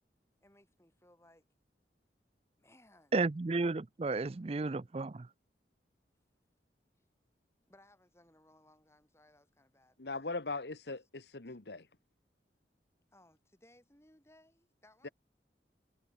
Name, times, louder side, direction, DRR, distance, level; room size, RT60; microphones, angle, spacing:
voice 1, 0.4-1.5 2.6-3.2 7.0-7.1 7.7-10.3 11.0-11.1 11.5-11.6 13.1-15.1, left 1 dB, 15° left, 6.2 m, -64 dB
voice 2, 3.1-5.3, right 3 dB, 35° right, 0.4 m, -33 dB
voice 3, 10.0-11.9 15.0-15.1, left 3 dB, 70° left, 1.3 m, -40 dB
head